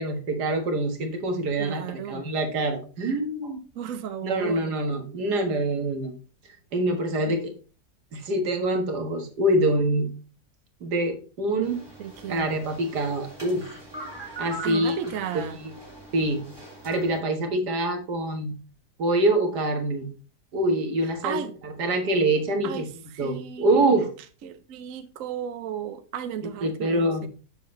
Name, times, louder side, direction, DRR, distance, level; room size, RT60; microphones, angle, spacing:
voice 1, 0.0-3.6 4.2-6.1 6.7-7.5 8.1-10.1 10.8-11.8 12.3-13.6 14.4-15.0 15.3-15.7 16.1-16.5 16.8-18.6 19.0-20.1 20.5-22.9 23.2-24.1 26.6-27.3, right 1 dB, 80° right, 2.1 m, -25 dB
voice 2, 1.6-2.3 3.7-4.7 7.3-7.4 12.0-12.6 14.6-15.6 21.2-21.5 22.6-24.0 24.4-27.3, right 9 dB, 60° right, 1.0 m, -35 dB
sound 1, 11.6-17.2, right 2 dB, 15° right, 2.7 m, -41 dB
7.4 x 6.6 x 3.2 m
omnidirectional pair, 1.7 m